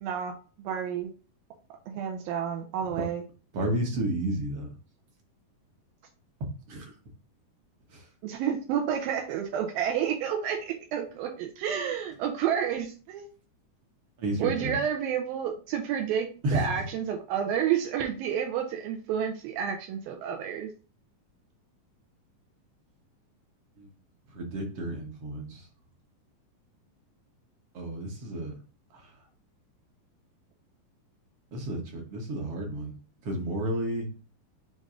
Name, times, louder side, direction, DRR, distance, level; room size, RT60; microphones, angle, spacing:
voice 1, 0.0-1.1 1.9-3.2 8.2-13.3 14.4-20.7, right 8 dB, 80° right, 3 dB, 2.5 m, -30 dB
voice 2, 3.5-4.7 6.7-6.9 7.9-8.1 14.2-14.8 16.4-16.9 23.8-23.9 24.3-25.7 27.7-28.5 28.9-29.1 31.5-32.9 33.2-34.1, right 1 dB, 65° right, 2 dB, 1.5 m, -31 dB
7.3 x 2.6 x 4.8 m, 0.37 s
omnidirectional pair, 4.1 m